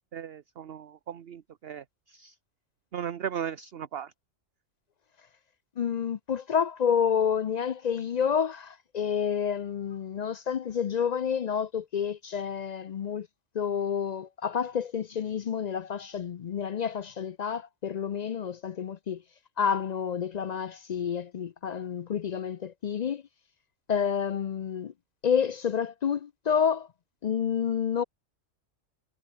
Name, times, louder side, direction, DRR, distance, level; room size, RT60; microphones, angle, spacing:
voice 1, 0.1-2.3 2.9-4.1, right 8 dB, 50° right, 1.0 m, -37 dB
voice 2, 5.8-13.3 13.5-19.2 19.6-23.2 23.9-24.9 25.2-26.9 27.2-28.0, left 7 dB, 70° left, 0.4 m, -29 dB
omnidirectional pair, 1.4 m